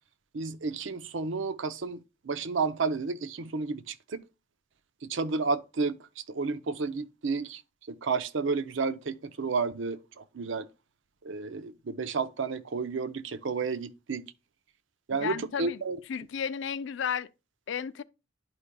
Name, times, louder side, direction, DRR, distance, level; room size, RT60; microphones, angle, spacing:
voice 1, 0.3-4.2 5.0-7.6 7.9-10.7 11.2-14.3 15.1-16.0, right 4 dB, 65° right, 0.6 m, -31 dB
voice 2, 15.1-15.8 16.1-17.3 17.7-18.0, left 7 dB, 60° left, 0.4 m, -33 dB
11.5 x 4.9 x 2.2 m
head